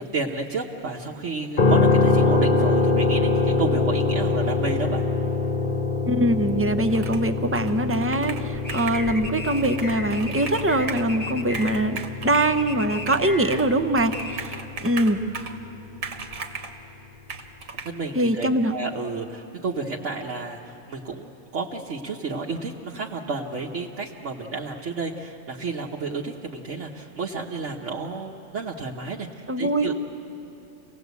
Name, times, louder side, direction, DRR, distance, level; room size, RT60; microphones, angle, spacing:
voice 1, 0.0-5.0 17.8-29.9, right 3 dB, 65° right, -2 dB, 1.4 m, -31 dB
sound 1, 1.6-15.6, left 3 dB, 40° left, 1.2 m, -25 dB
voice 2, 6.1-14.6 14.8-15.2 18.1-18.7 29.5-29.9, right 1 dB, 15° right, 8 dB, 0.5 m, -23 dB
Computer keyboard, 6.9-7.3 7.5-9.1 9.5-11.1 11.5-12.5 13.1-13.7 14.0-15.6 16.0-16.8 17.3-17.9, right 4 dB, 80° right, 1.7 m, -37 dB
sound 2, 8.4-14.4, left 1 dB, 10° left, 1.3 m, -37 dB
27.0 x 18.0 x 8.2 m, 2.9 s
omnidirectional pair, 1.4 m